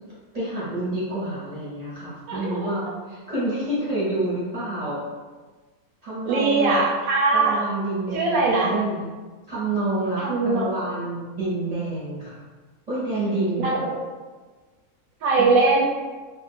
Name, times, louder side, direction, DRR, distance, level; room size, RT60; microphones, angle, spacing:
voice 1, 0.3-2.8 3.1-5.0 6.0-6.8 7.3-9.1 9.5-12.4 12.9-13.8 15.4-15.5, right 2 dB, 30° right, -9 dB, 0.8 m, -28 dB
voice 2, 2.3-2.6 6.2-7.6 8.1-8.7 10.2-10.7 13.6-14.0 15.2-15.8, right 3 dB, 75° right, -2 dB, 1.0 m, -21 dB
2.4 x 2.4 x 3.6 m, 1.3 s
omnidirectional pair, 1.6 m